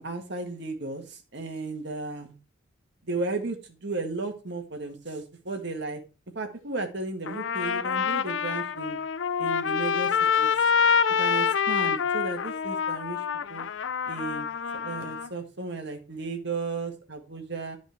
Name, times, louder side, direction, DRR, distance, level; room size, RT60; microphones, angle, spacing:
voice 1, 0.0-2.3 3.1-6.0 6.4-9.0 9.4-10.5 11.2-13.2 13.5-13.7 14.1-14.5 14.8-17.8, right 3 dB, 55° right, 4 dB, 1.8 m, -34 dB
Trumpet, 7.3-15.3, left 6 dB, 65° left, 0.5 m, -26 dB
10.5 x 5.2 x 4.5 m, 0.32 s
head